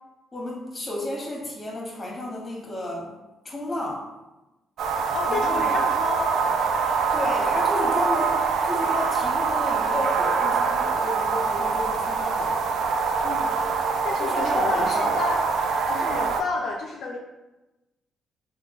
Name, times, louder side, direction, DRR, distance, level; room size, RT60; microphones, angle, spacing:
voice 1, 0.3-3.1 3.4-4.0 5.3-5.8 7.1-12.5 14.2-15.3, left 1 dB, 25° left, -2 dB, 1.1 m, -32 dB
sound 1, 4.8-16.4, right 5 dB, 70° right, 0.4 m, -24 dB
voice 2, 5.1-6.3 13.2-13.5 14.0-15.4 15.9-17.2, left 3 dB, 65° left, 0 dB, 0.3 m, -30 dB
3.1 x 2.3 x 3.6 m, 1.0 s
cardioid pair, 90°, 0 cm